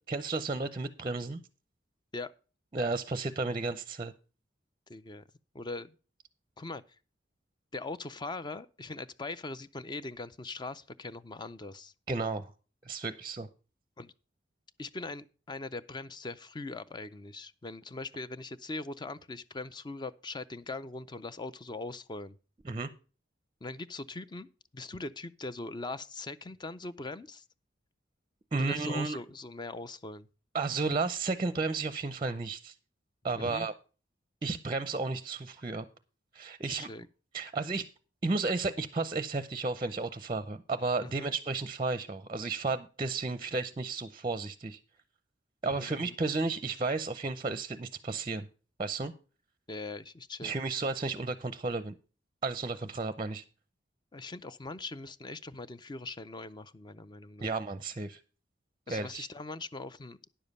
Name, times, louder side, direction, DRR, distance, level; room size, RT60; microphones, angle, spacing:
voice 1, 0.1-1.4 2.7-4.1 12.1-12.5 12.8-13.5 22.7-22.9 28.5-29.2 30.5-32.7 33.2-33.7 34.4-35.8 36.3-36.9 37.3-37.9 38.2-44.8 45.6-48.5 48.8-49.1 50.4-51.9 52.4-53.4 57.4-58.2 58.9-59.3, right 3 dB, 25° right, 0.5 m, -33 dB
voice 2, 4.9-5.2 5.5-5.9 6.6-6.8 7.7-11.9 14.0-14.1 14.8-22.4 23.6-27.4 28.5-30.3 33.3-33.7 36.6-37.1 41.0-41.3 45.6-46.1 49.7-50.5 54.1-57.5 58.9-60.2, left 3 dB, 25° left, 0.5 m, -41 dB
10.0 x 7.1 x 5.3 m
head